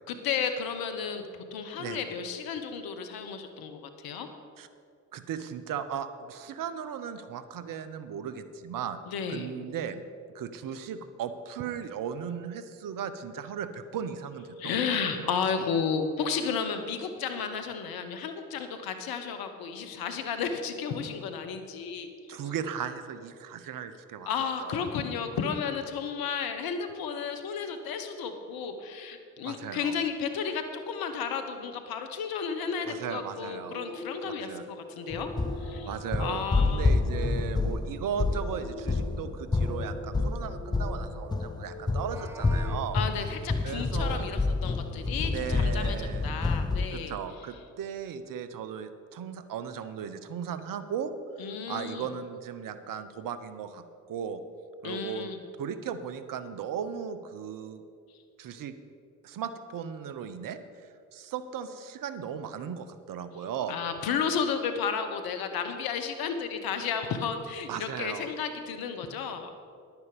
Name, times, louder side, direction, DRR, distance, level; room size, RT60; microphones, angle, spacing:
voice 1, 0.1-4.3 9.1-9.5 14.6-22.4 24.3-35.3 35.6-35.9 36.2-36.9 42.9-47.1 51.4-52.1 54.8-55.4 63.7-69.5, left 6 dB, 65° left, 7 dB, 1.3 m, -33 dB
voice 2, 5.1-9.0 9.3-10.0 10.3-15.5 22.3-24.3 24.6-24.9 29.4-29.9 32.9-33.8 34.2-34.6 35.8-43.0 43.6-44.3 45.3-46.3 46.9-51.1 51.4-54.4 54.8-55.3 55.6-57.8 58.4-58.7 59.2-63.8 67.7-68.3, right 7 dB, 55° right, 11 dB, 0.9 m, -37 dB
sound 1, 32.5-43.8, equal, 85° right, 2.4 m, -44 dB
sound 2, 35.1-46.9, left 3 dB, 10° left, 0.5 m, -29 dB
Meow, 41.8-42.8, right 2 dB, 5° right, 1.2 m, -47 dB
11.0 x 9.5 x 5.2 m, 2.3 s
hypercardioid pair, 55°, 39 cm